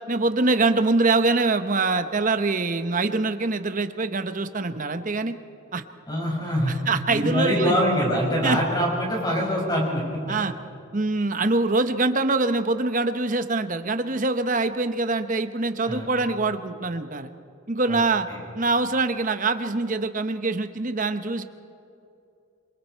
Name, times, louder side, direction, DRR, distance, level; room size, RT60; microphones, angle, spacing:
voice 1, 0.1-5.3 5.7-5.8 6.7-7.7 8.4-8.6 10.3-10.5 10.9-17.3 17.7-18.3 18.5-21.4, right 3 dB, 40° right, 9 dB, 0.9 m, -24 dB
voice 2, 6.1-6.7 7.1-10.2 15.8-16.1 17.9-18.0 18.3-18.4, equal, 20° left, -2 dB, 5.7 m, -24 dB
27.0 x 23.5 x 4.5 m, 2.7 s
head